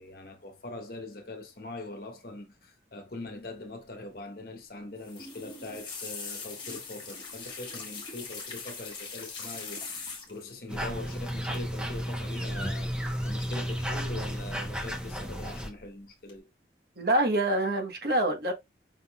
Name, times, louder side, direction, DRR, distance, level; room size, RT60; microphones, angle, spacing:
voice 1, 0.0-16.5, left 2 dB, 55° left, 1.2 m, -42 dB
sound 1, 5.0-10.6 11.5-11.8 12.1-12.4 13.6-14.2 14.5-15.1 15.5-15.9 16.3-16.4, left 4 dB, 25° left, 1.5 m, -41 dB
sound 2, 10.7-15.7, equal, 5° right, 1.0 m, -33 dB
voice 2, 17.0-18.5, right 1 dB, 55° right, 1.3 m, -26 dB
5.5 x 3.7 x 2.4 m
head